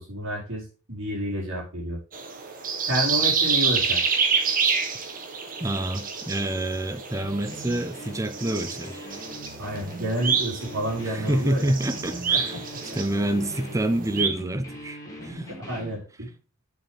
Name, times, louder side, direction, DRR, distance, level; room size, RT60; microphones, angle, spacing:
voice 1, 0.0-2.0 2.9-4.0 9.6-11.7 12.3-13.0 15.5-16.3, equal, 60° right, 4.6 m, -30 dB
sound 1, 2.1-14.3, right 5 dB, 40° right, 1.4 m, -28 dB
voice 2, 5.6-9.1 11.1-12.6 12.9-15.5, right 1 dB, 15° right, 0.8 m, -27 dB
sound 2, 7.1-16.0, equal, 15° left, 3.4 m, -41 dB
8.7 x 6.8 x 3.4 m
head